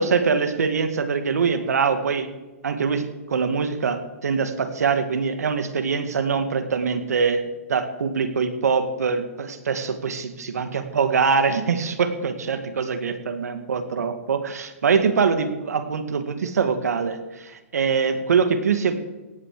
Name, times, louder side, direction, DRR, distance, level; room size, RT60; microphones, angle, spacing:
voice 1, 0.0-2.3 2.6-7.4 7.7-18.9, right 5 dB, 85° right, 8 dB, 2.2 m, -23 dB
17.5 x 13.0 x 5.0 m, 1.1 s
hypercardioid pair, 175°, 8 cm